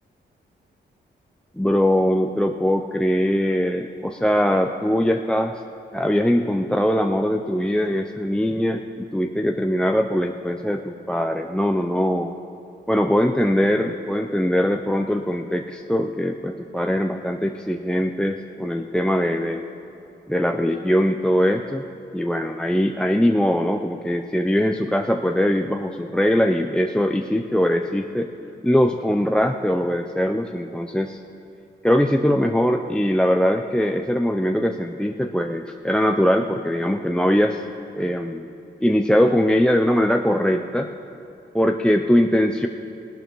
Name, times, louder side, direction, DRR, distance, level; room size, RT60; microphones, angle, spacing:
voice 1, 1.6-5.6 5.9-12.3 12.9-19.6 20.3-21.8 22.1-28.3 28.6-31.2 31.8-37.6 38.0-38.4 38.8-40.9 41.5-42.7, equal, 5° left, 4 dB, 0.5 m, -21 dB
17.0 x 12.0 x 3.1 m, 2.7 s
cardioid pair, 60°, 20 cm